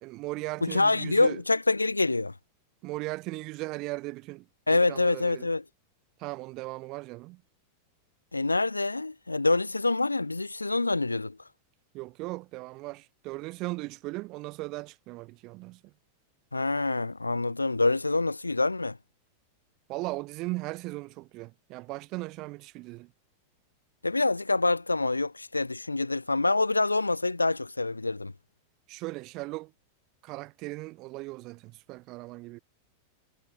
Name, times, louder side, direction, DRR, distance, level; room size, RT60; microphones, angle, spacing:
voice 1, 0.0-1.4 2.8-5.5 6.2-7.4 11.9-15.9 19.9-23.1 28.9-29.7 30.2-32.6, right 22 dB, 40° right, 0.5 m, -38 dB
voice 2, 0.6-2.3 4.7-5.6 8.3-11.4 16.5-19.0 24.0-28.3, left 3 dB, 80° left, 0.4 m, -26 dB
figure-of-eight pair, 90°, 0 cm